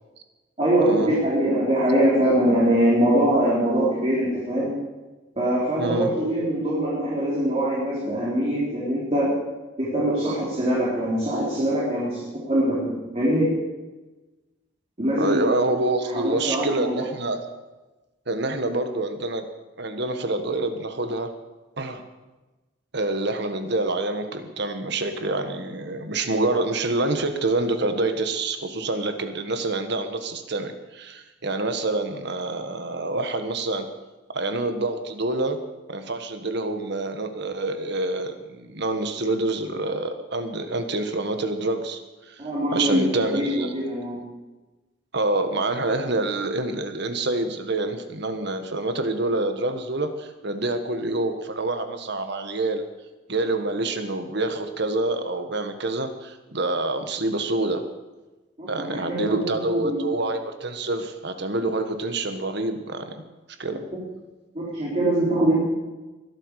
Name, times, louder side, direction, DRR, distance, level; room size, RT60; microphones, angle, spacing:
voice 1, 0.6-4.7 5.4-9.3 9.8-12.2 12.5-13.5 15.0-15.5 16.2-16.9 42.4-43.0 43.3-44.2 58.6-60.1 64.5-65.7, right 1 dB, 35° right, -7 dB, 4.0 m, -23 dB
voice 2, 5.8-6.1 15.2-17.5 18.3-19.4 19.8-21.3 21.8-22.0 22.9-33.9 34.3-35.6 35.9-42.0 42.3-42.4 42.7-43.7 45.1-52.8 53.3-57.8 58.7-63.2 63.6-63.8, right 2 dB, 65° right, 8 dB, 1.5 m, -27 dB
21.0 x 12.0 x 4.9 m, 1.2 s
head